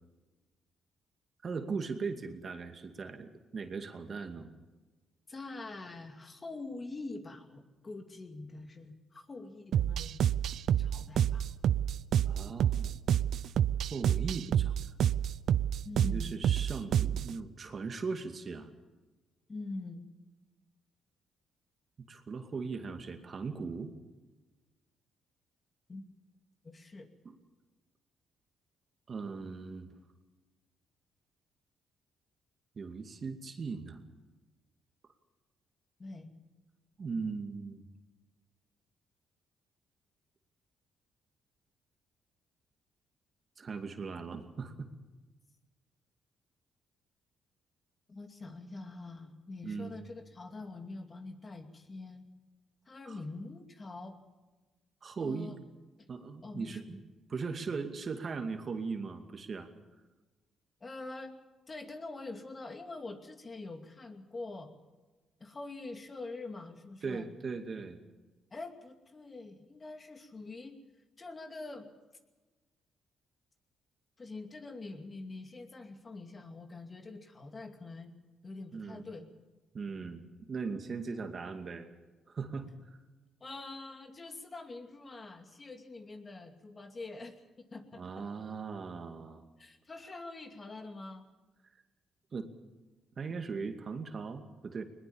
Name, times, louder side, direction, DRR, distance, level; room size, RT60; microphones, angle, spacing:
voice 1, 1.4-4.5 12.2-12.9 13.9-14.7 16.0-18.7 22.0-23.9 27.2-27.4 29.1-29.9 32.8-34.0 37.0-37.8 43.6-44.9 49.6-49.9 53.1-53.2 55.0-55.5 56.1-57.0 57.3-59.7 67.0-68.0 78.7-79.0 79.7-80.2 80.5-81.9 82.3-82.7 87.9-89.4 92.3-92.5 93.2-94.8, right 4 dB, 45° right, 6 dB, 2.3 m, -39 dB
voice 2, 5.3-10.2 10.8-11.5 15.8-16.3 19.5-20.0 25.9-26.0 26.6-27.1 36.0-36.3 48.1-52.3 52.9-54.2 55.2-55.6 56.4-57.0 60.8-61.3 61.7-64.7 65.4-67.3 68.5-70.8 71.2-71.9 74.2-78.1 78.4-79.3 83.4-88.1 89.6-91.2, left 3 dB, 30° left, 6 dB, 2.5 m, -44 dB
sound 1, 9.7-17.3, right 10 dB, 70° right, 0.6 m, -29 dB
21.0 x 20.0 x 7.2 m, 1.2 s
cardioid pair, 90°, 0 cm